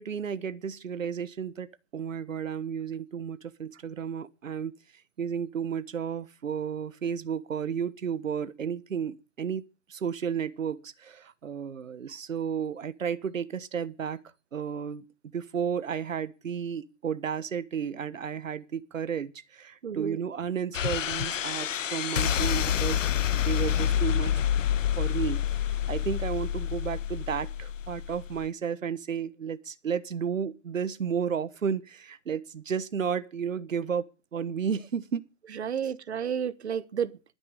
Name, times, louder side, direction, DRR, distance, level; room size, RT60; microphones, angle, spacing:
voice 1, 0.0-4.7 5.2-9.6 9.9-14.2 14.5-15.0 15.3-23.1 23.3-24.4 25.0-35.2, right 7 dB, 90° right, 1.4 m, -32 dB
voice 2, 19.8-20.2 35.5-37.3, right 8 dB, 60° right, 1.4 m, -31 dB
sound 1, 20.7-28.5, left 10 dB, 80° left, 0.8 m, -28 dB
21.0 x 9.8 x 5.0 m
hypercardioid pair, 170°, 38 cm